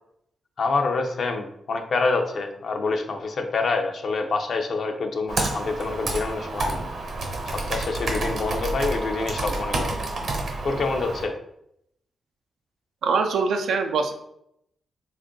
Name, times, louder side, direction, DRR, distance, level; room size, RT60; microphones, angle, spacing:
voice 1, 0.6-6.8 7.5-9.9 10.6-11.3, left 3 dB, 60° left, 4 dB, 0.5 m, -26 dB
Computer keyboard, 5.3-11.3, right 2 dB, 65° right, 0.9 m, -29 dB
voice 2, 13.0-14.1, right 4 dB, 90° right, 5 dB, 0.4 m, -23 dB
3.6 x 2.4 x 3.7 m, 0.76 s
cardioid pair, 105°, 0 cm